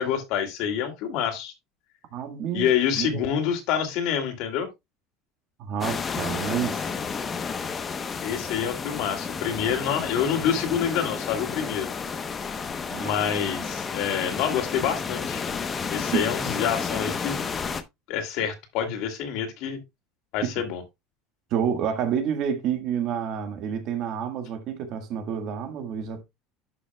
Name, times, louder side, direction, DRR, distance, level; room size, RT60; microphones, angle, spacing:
voice 1, 0.0-1.5 2.5-4.7 8.2-11.9 13.0-15.4 15.9-17.4 18.1-19.8 20.3-20.8, left 8 dB, 60° left, 2.5 m, -27 dB
voice 2, 2.1-2.7 3.0-3.2 5.6-6.9 12.9-13.3 16.1-16.3 20.4-20.5 21.5-26.2, right 8 dB, 50° right, 1.5 m, -29 dB
sound 1, 5.8-17.8, left 5 dB, 20° left, 0.9 m, -31 dB
11.5 x 6.2 x 2.2 m
cardioid pair, 150°, 0 cm